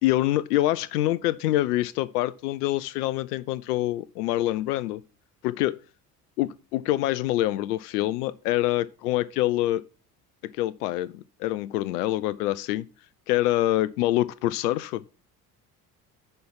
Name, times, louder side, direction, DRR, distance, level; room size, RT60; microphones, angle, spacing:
voice 1, 0.0-5.0 5.4-5.8 6.4-9.8 10.4-12.9 13.3-15.0, left 15 dB, 75° left, 0.5 m, -25 dB
10.5 x 4.4 x 5.6 m
figure-of-eight pair, 55°, 47 cm